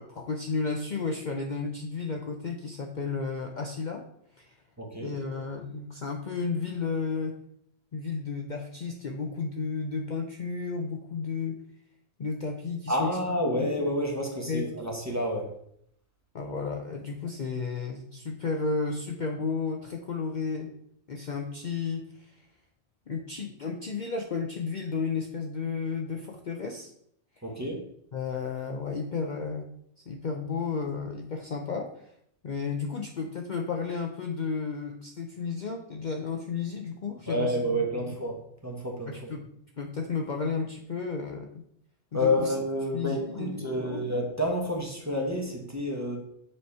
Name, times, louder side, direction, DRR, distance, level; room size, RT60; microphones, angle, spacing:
voice 1, 0.0-4.1 4.4-4.6 5.0-7.4 7.9-11.6 12.2-13.2 13.6-13.7 14.5-14.6 16.3-20.7 21.1-22.4 23.1-26.9 28.1-32.1 32.4-38.1 39.1-39.5 39.8-41.6 42.1-42.5 42.9-44.0, left 4 dB, 50° left, 2 dB, 0.6 m, -33 dB
voice 2, 4.8-5.1 12.9-15.5 27.4-27.8 37.3-38.4 38.6-39.3 42.1-46.2, left 1 dB, 15° right, 0 dB, 1.1 m, -29 dB
7.0 x 3.2 x 5.5 m, 0.71 s
omnidirectional pair, 1.2 m